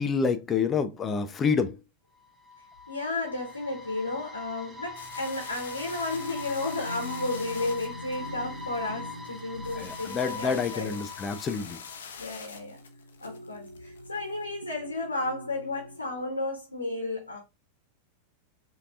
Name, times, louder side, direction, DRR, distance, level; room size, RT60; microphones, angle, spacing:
voice 1, 0.0-1.7 9.8-11.8, left 5 dB, 25° left, 0.5 m, -28 dB
sound 1, 2.2-12.2, left 3 dB, 5° right, 0.8 m, -42 dB
voice 2, 2.9-11.0 12.2-12.8 13.2-17.4, left 2 dB, 80° left, 1.1 m, -33 dB
sound 2, 4.9-14.4, left 6 dB, 65° left, 0.7 m, -45 dB
sound 3, 5.5-11.6 12.5-16.4, left 1 dB, 85° right, 0.5 m, -44 dB
5.1 x 2.9 x 2.4 m
figure-of-eight pair, 90°, 0 cm